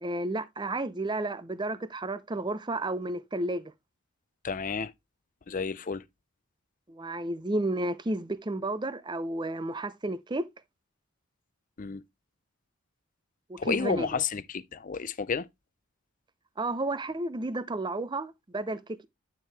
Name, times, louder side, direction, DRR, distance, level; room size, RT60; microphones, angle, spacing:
voice 1, 0.0-3.7 6.9-10.4 13.7-14.2 16.6-18.8, right 2 dB, 20° right, 0.6 m, -32 dB
voice 2, 4.4-4.9 5.5-6.0 11.8-12.0 13.6-15.5, left 5 dB, 40° left, 0.5 m, -31 dB
9.1 x 4.6 x 3.3 m
head